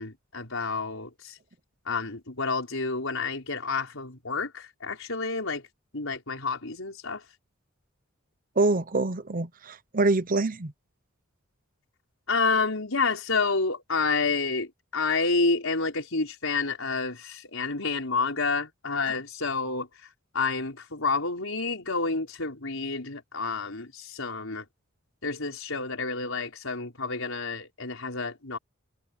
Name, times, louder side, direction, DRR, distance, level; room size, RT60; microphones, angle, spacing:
voice 1, 0.0-1.4 1.9-5.6 5.9-7.2 12.3-19.9 20.3-24.6 25.2-28.6, left 4 dB, 75° left, 5.3 m, -29 dB
voice 2, 8.6-10.7, right 2 dB, 40° right, 1.0 m, -25 dB
head